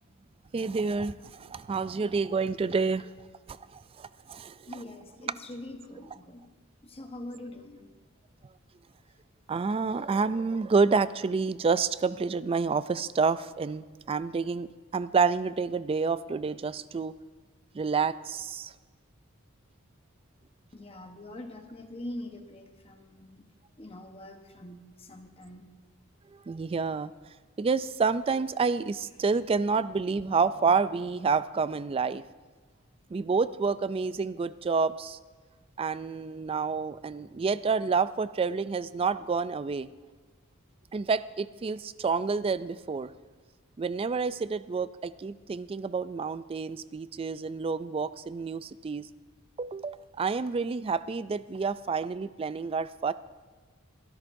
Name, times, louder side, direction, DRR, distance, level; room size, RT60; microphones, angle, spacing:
voice 1, 0.5-3.1 3.5-4.9 5.2-5.3 9.5-17.1 17.7-18.7 26.5-27.1 27.6-32.2 33.1-35.2 35.8-39.9 40.9-43.1 43.8-49.1 49.6-53.1, right 4 dB, 25° right, 15 dB, 0.3 m, -29 dB
voice 2, 4.7-6.5 6.8-7.9 20.7-23.5 23.8-25.6, left 1 dB, 25° left, 5 dB, 1.0 m, -43 dB
23.5 x 13.0 x 2.6 m, 1.4 s
head